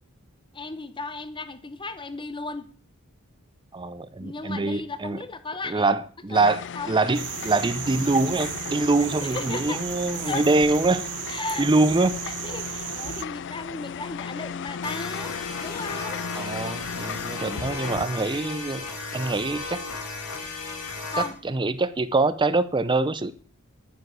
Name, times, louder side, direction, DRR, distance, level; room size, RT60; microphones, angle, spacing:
voice 1, 0.5-2.7 4.2-5.9 6.3-7.0 9.2-9.8 10.2-10.4 11.3-11.7 12.2-16.2 21.1-21.3, left 3 dB, 20° left, 0.9 m, -35 dB
voice 2, 3.7-5.2 5.6-11.1 11.6-12.1 16.4-18.8 19.1-19.8 21.4-23.3, right 3 dB, 20° right, 0.6 m, -24 dB
sound 1, 6.3-18.1, left 7 dB, 55° left, 0.4 m, -36 dB
sound 2, 7.1-13.3, right 15 dB, 85° right, 0.5 m, -35 dB
sound 3, 14.8-21.3, left 3 dB, 75° left, 2.8 m, -35 dB
10.5 x 9.8 x 6.1 m
head